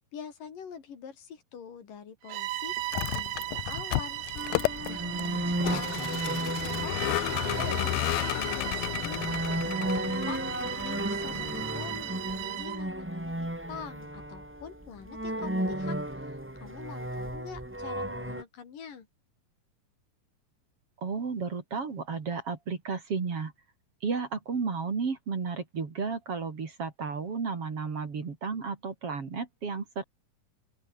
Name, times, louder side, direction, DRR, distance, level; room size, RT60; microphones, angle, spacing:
voice 1, 0.1-4.2 4.9-7.9 8.2-19.1, left 7 dB, 65° left, 4.7 m, -45 dB
Bowed string instrument, 2.2-12.9, right 15 dB, 85° right, 1.4 m, -36 dB
Vehicle, 2.8-12.2, left 21 dB, 85° left, 2.3 m, -33 dB
sound 1, 4.3-18.4, right 1 dB, 5° right, 0.8 m, -34 dB
voice 2, 5.0-6.4 21.0-23.5 24.0-30.0, right 5 dB, 40° right, 3.7 m, -33 dB
open air
omnidirectional pair, 4.1 m